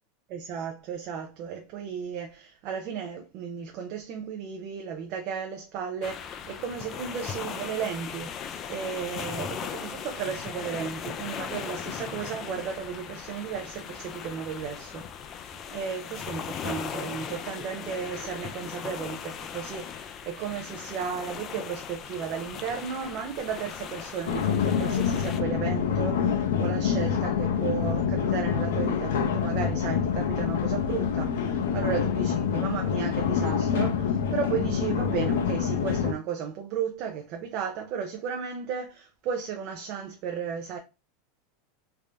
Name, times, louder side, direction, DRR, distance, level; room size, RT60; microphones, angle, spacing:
voice 1, 0.3-8.3 8.7-40.8, right 7 dB, 40° right, 0.5 m, -34 dB
sound 1, 6.0-25.4, left 8 dB, 25° left, 0.3 m, -38 dB
sound 2, 24.3-36.1, left 7 dB, 80° left, 0.6 m, -26 dB
3.4 x 2.6 x 3.4 m
supercardioid pair, 165°, 0 cm